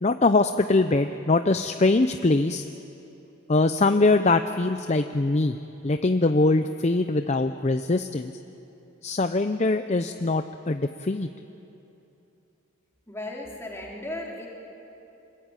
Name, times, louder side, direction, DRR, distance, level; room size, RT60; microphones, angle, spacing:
voice 1, 0.0-2.6 3.5-5.5 5.8-8.3 9.0-11.3, left 2 dB, 35° left, 8 dB, 0.6 m, -22 dB
voice 2, 13.1-14.5, left 1 dB, 15° left, -3 dB, 3.6 m, -35 dB
25.5 x 21.5 x 9.0 m, 2.9 s
head